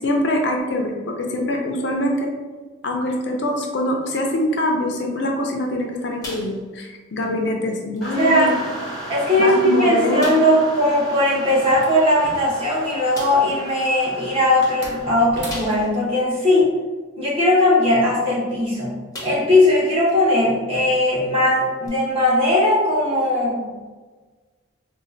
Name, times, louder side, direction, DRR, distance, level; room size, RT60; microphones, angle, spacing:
voice 1, 0.0-2.3 2.8-8.6 9.4-10.5, left 1 dB, 60° left, 2 dB, 0.4 m, -24 dB
sound 1, 6.2-6.9 7.2-7.4 7.9-8.1 8.9-9.0 9.4-9.5 10.2-10.6 12.3-12.4 13.1-13.5 15.5-16.1 16.6-16.7 18.5-18.7 19.1-19.6 20.1-20.2 21.8-21.9, left 1 dB, 20° left, 0.7 m, -37 dB
sound 2, 8.0-15.1, right 1 dB, ahead, 1.0 m, -36 dB
voice 2, 8.2-8.5 9.1-16.7 17.2-18.9 19.2-23.7, left 1 dB, 30° right, -8 dB, 1.1 m, -18 dB
sound 3, 11.6-13.0 14.6-16.0, right 2 dB, 60° right, 0.7 m, -37 dB
4.1 x 2.2 x 2.5 m, 1.4 s
head